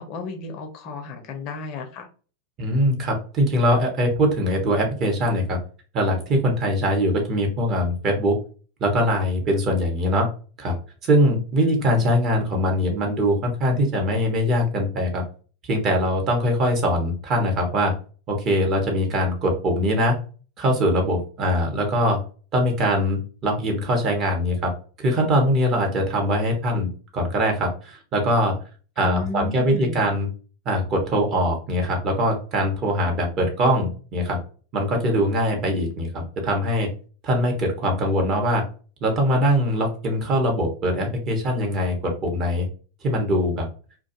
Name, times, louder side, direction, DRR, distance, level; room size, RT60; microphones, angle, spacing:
voice 1, 0.0-2.1 11.6-12.5 29.0-30.1, left 3 dB, 40° left, 5 dB, 0.5 m, -34 dB
voice 2, 2.6-5.6 5.9-8.4 8.8-10.3 10.6-10.8 11.0-15.2 15.7-17.9 18.3-20.2 20.6-22.2 22.5-24.7 25.0-28.5 29.0-30.3 30.7-34.4 34.7-36.9 37.2-38.6 39.0-42.7 43.0-43.7, equal, 30° right, 1 dB, 0.9 m, -22 dB
2.4 x 2.2 x 2.8 m, 0.38 s
figure-of-eight pair, 90°, 0 cm